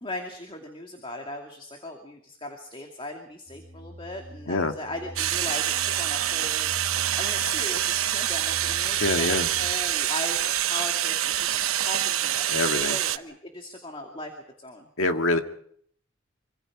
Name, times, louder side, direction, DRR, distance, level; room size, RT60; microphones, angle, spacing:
voice 1, 0.0-6.7 7.2-12.5 12.8-14.3 14.6-14.9, left 1 dB, 25° left, 3 dB, 2.4 m, -38 dB
sound 1, 3.5-9.7, right 1 dB, ahead, 3.3 m, -43 dB
sound 2, 5.2-13.2, right 12 dB, 80° right, 1.0 m, -26 dB
voice 2, 9.0-9.5 12.5-13.0 15.0-15.4, left 2 dB, 70° left, 6 dB, 1.9 m, -25 dB
26.0 x 25.0 x 4.9 m, 0.64 s
head